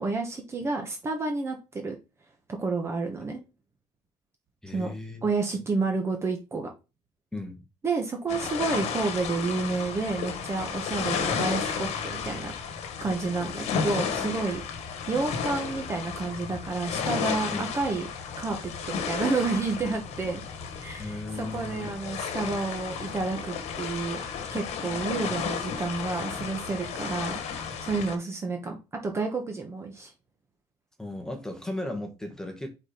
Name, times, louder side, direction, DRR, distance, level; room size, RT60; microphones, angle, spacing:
voice 1, 0.0-2.0 2.6-3.4 4.7-4.9 5.2-6.7 7.8-12.5 13.0-14.6 15.1-18.1 18.4-18.6 18.9-20.4 20.8-24.2 24.5-27.3 27.8-28.8 29.0-30.1, right 3 dB, 25° right, 1.1 m, -30 dB
voice 2, 4.6-5.2 7.3-7.6 14.1-14.4 17.5-17.6 21.0-21.9 25.2-25.3 31.0-32.7, left 2 dB, 5° left, 1.4 m, -36 dB
sound 1, 8.3-28.2, left 6 dB, 65° left, 1.3 m, -33 dB
4.9 x 4.3 x 5.0 m
cardioid pair, 145°, 12 cm